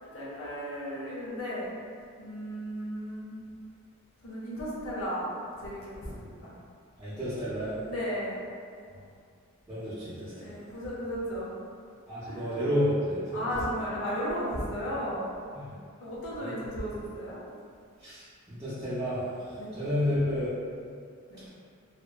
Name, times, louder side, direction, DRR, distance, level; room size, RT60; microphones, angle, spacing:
voice 1, 0.0-1.7 2.2-3.5 4.2-6.5 7.9-8.4 10.4-11.5 12.2-12.4 13.3-15.3 16.0-17.4 19.6-19.7 21.3-21.4, equal, 70° left, -7 dB, 0.6 m, -35 dB
voice 2, 7.0-7.8 9.7-10.5 12.1-13.4 15.6-15.8 16.4-16.6 18.0-19.2 19.5-20.5, left 1 dB, 15° right, -14 dB, 0.5 m, -31 dB
2.8 x 2.1 x 2.2 m, 2.3 s
head